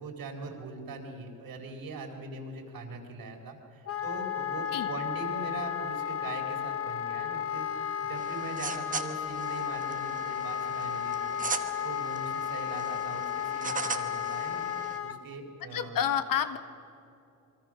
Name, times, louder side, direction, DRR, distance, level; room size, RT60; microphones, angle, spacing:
voice 1, 0.0-7.7 8.0-14.7 15.0-16.1, right 3 dB, 80° right, 2 dB, 4.2 m, -41 dB
Wind instrument woodwind instrument, 3.8-15.2, left 9 dB, 40° left, 1.1 m, -33 dB
sound 1, 8.2-15.0, right 4 dB, 25° right, 1.1 m, -40 dB
voice 2, 15.7-16.6, left 9 dB, 75° left, 10 dB, 1.5 m, -29 dB
28.0 x 23.0 x 6.4 m, 2.6 s
wide cardioid pair, 155°, 34 cm